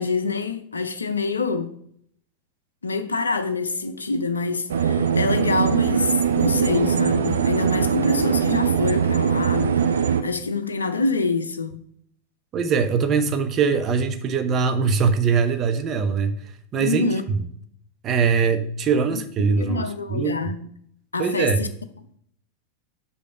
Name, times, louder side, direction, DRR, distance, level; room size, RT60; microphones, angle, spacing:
voice 1, 0.0-1.8 2.8-11.8 16.8-17.2 19.1-19.2 19.5-20.7 21.1-21.7, left 3 dB, 75° left, 0.5 m, -26 dB
sound 1, 4.7-10.2, right 7 dB, 65° right, 0.5 m, -21 dB
voice 2, 12.5-17.1 18.0-20.4 21.2-21.7, right 5 dB, 30° right, 0.8 m, -22 dB
5.2 x 5.0 x 5.6 m
figure-of-eight pair, 90°, 0 cm